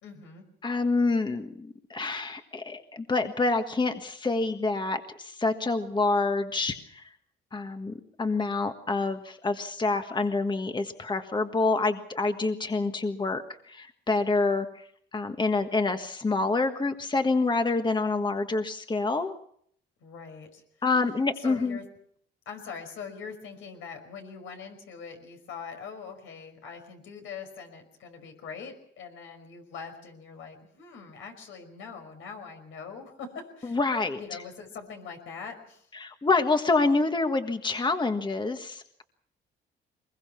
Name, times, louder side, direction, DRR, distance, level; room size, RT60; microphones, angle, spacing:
voice 1, 0.0-0.4 20.0-20.6 21.4-21.8 22.5-33.8 34.1-35.9, left 6 dB, 80° left, 5 dB, 5.4 m, -42 dB
voice 2, 0.6-7.1 7.5-19.3 20.8-21.8 33.7-34.4 35.9-39.0, left 3 dB, 25° left, 7 dB, 1.5 m, -27 dB
23.0 x 21.5 x 5.9 m, 0.65 s
cardioid pair, 90°, 20 cm